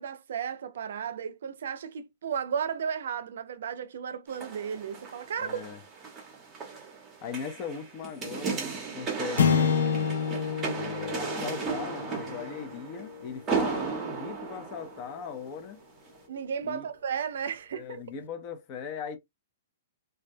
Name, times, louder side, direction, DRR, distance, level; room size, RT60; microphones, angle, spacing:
voice 1, 0.0-5.6 16.3-18.0, right 7 dB, 70° right, 0.4 m, -34 dB
sound 1, 4.3-15.5 16.1-16.2, right 5 dB, 15° right, 0.7 m, -35 dB
voice 2, 5.4-5.8 7.2-10.1 10.7-15.8 16.6-16.9 17.8-19.2, left 7 dB, 30° left, 0.5 m, -39 dB
sound 2, 9.4-13.8, left 6 dB, 85° left, 0.4 m, -29 dB
2.2 x 2.1 x 2.5 m
hypercardioid pair, 160°, 0 cm